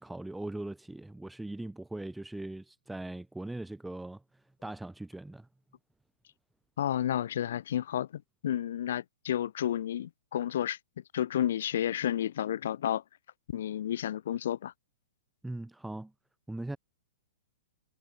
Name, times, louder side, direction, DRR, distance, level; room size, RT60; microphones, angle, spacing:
voice 1, 0.0-5.5 15.4-16.1 16.5-16.8, right 2 dB, 5° right, 4.1 m, -40 dB
voice 2, 6.8-10.8 11.1-13.0 13.5-14.7, left 10 dB, 60° left, 4.6 m, -31 dB
figure-of-eight pair, 110°, 0 cm